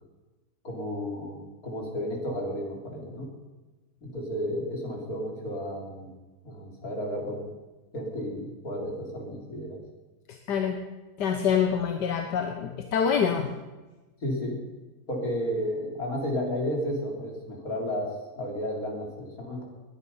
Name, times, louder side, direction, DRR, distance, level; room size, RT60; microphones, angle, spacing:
voice 1, 0.6-3.3 4.0-6.1 6.4-7.5 7.9-9.8 14.2-14.6 15.1-19.7, equal, 55° left, 0 dB, 3.7 m, -32 dB
voice 2, 10.3-10.8 11.2-13.5, left 7 dB, 80° left, 5 dB, 1.6 m, -26 dB
20.5 x 9.8 x 5.5 m, 1.2 s
omnidirectional pair, 1.8 m